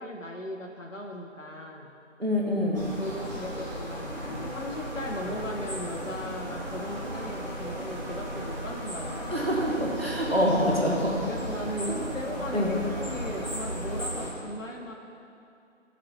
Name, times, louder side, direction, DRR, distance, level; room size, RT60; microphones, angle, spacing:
voice 1, 0.0-1.9 3.0-9.7 11.3-14.9, left 1 dB, 75° left, 1 dB, 1.0 m, -37 dB
voice 2, 2.2-2.9 9.3-11.2 11.9-12.0 12.5-12.7, equal, 50° right, -2 dB, 1.1 m, -26 dB
sound 1, 2.7-14.3, equal, 35° left, 1.6 m, -35 dB
10.5 x 7.5 x 2.8 m, 2.6 s
figure-of-eight pair, 175°, 39 cm